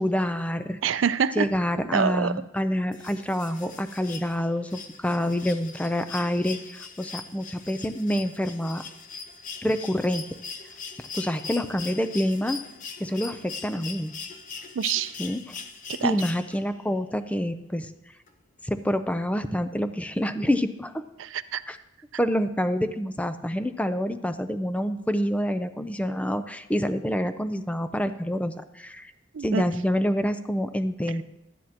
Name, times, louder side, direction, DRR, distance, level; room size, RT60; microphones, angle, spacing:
voice 1, 0.0-0.8 1.4-8.8 9.6-10.3 11.1-12.6 13.0-14.1 15.2-15.5 16.0-17.9 18.6-21.0 21.7-21.8 22.2-29.1 29.4-31.2, equal, 5° left, 11 dB, 0.4 m, -27 dB
voice 2, 0.8-1.5 1.9-2.3 14.8-15.1 16.0-16.1 21.2-21.6 29.3-29.6, right 7 dB, 85° right, 15 dB, 0.4 m, -25 dB
sound 1, 2.9-16.8 18.3-18.4, left 5 dB, 45° left, 0.7 m, -41 dB
12.5 x 9.6 x 2.8 m, 0.94 s
head